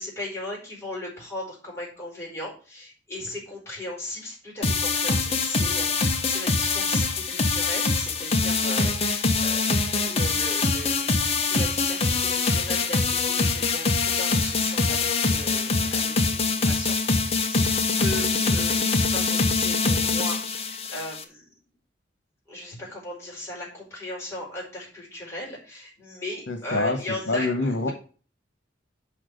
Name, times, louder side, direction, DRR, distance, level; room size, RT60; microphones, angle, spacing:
voice 1, 0.0-21.4 22.5-27.9, left 1 dB, 15° left, -4 dB, 4.7 m, -37 dB
sound 1, 4.6-21.2, left 4 dB, 35° left, 1.1 m, -24 dB
voice 2, 26.5-27.0 27.3-27.9, left 2 dB, 70° left, 5 dB, 1.5 m, -25 dB
6.1 x 6.0 x 6.6 m, 0.38 s
head